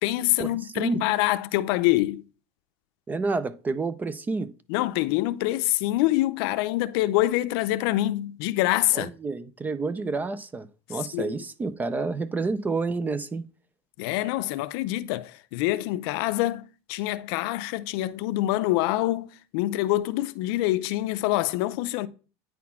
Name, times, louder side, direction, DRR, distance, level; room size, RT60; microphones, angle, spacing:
voice 1, 0.0-2.2 4.7-9.1 10.9-11.3 14.0-19.3 19.5-22.1, left 16 dB, 70° left, 0.5 m, -25 dB
voice 2, 3.1-4.5 8.9-13.5, right 3 dB, 15° right, 0.3 m, -29 dB
9.3 x 4.2 x 4.2 m
cardioid pair, 165°, 13 cm